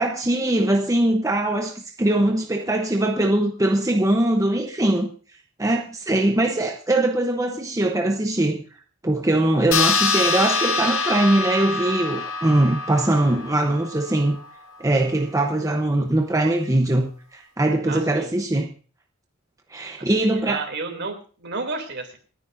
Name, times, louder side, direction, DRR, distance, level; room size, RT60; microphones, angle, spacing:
voice 1, 0.0-5.1 5.6-8.6 9.0-14.4 14.8-18.7 19.7-20.6, right 1 dB, 15° right, 0.8 m, -21 dB
sound 1, 9.7-14.6, left 4 dB, 65° left, 1.9 m, -25 dB
voice 2, 17.9-18.3 20.0-22.2, right 3 dB, 55° right, 2.9 m, -32 dB
28.0 x 9.8 x 2.6 m
head